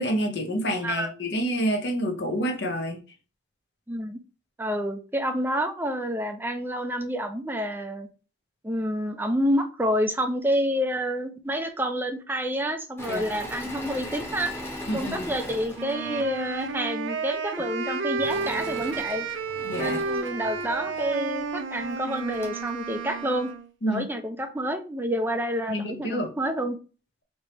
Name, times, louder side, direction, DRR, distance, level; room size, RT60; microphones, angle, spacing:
voice 1, 0.0-3.0 13.1-13.2 14.9-15.3 19.6-20.0 23.8-24.1 25.7-26.3, equal, 60° left, 0.9 m, -28 dB
voice 2, 3.9-4.2 4.6-8.1 8.6-14.5 14.9-19.3 19.7-23.5 23.9-26.8, equal, 10° right, 0.5 m, -28 dB
Engine / Mechanisms, 13.0-16.8 18.2-21.1 21.8-21.9 22.1-22.7, left 1 dB, 15° left, 1.0 m, -39 dB
Wind instrument woodwind instrument, 15.8-23.7, right 4 dB, 80° right, 0.6 m, -32 dB
3.4 x 2.9 x 4.3 m
head